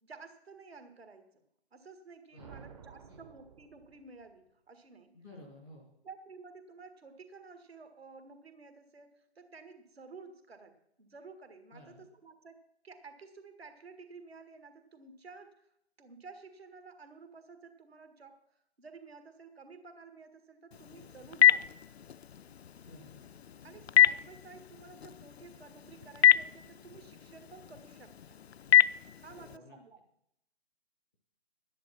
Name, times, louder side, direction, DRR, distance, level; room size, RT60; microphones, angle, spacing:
voice 1, 0.0-1.4 1.7-5.2 6.0-12.6 12.8-15.6 16.0-18.4 18.8-21.7 23.6-28.4 29.2-30.0, right 4 dB, 65° right, 8 dB, 1.9 m, -52 dB
sound 1, 2.4-4.3, right 7 dB, 30° right, 0.8 m, -53 dB
voice 2, 5.1-5.9 11.7-12.0 22.8-23.2 29.3-29.8, left 1 dB, 5° right, -7 dB, 0.5 m, -53 dB
Telephone, 20.7-29.6, left 11 dB, 70° left, 0.5 m, -28 dB
11.0 x 10.0 x 5.8 m, 0.75 s
figure-of-eight pair, 140°, 33 cm